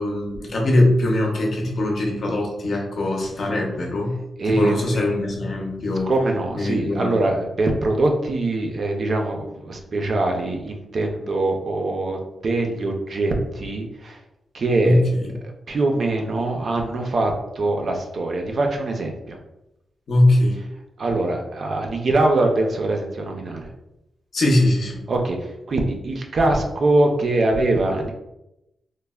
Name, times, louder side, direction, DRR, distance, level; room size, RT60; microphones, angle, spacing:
voice 1, 0.0-4.1 4.5-6.1 6.6-7.2 14.8-15.3 20.1-20.6 24.3-25.0, left 1 dB, 55° left, -1 dB, 0.6 m, -21 dB
voice 2, 4.4-5.1 6.1-14.2 14.5-15.0 15.7-19.4 21.0-23.6 25.1-28.1, right 2 dB, 45° right, 2 dB, 0.4 m, -23 dB
3.2 x 2.0 x 2.2 m, 0.90 s
wide cardioid pair, 155°, 0 cm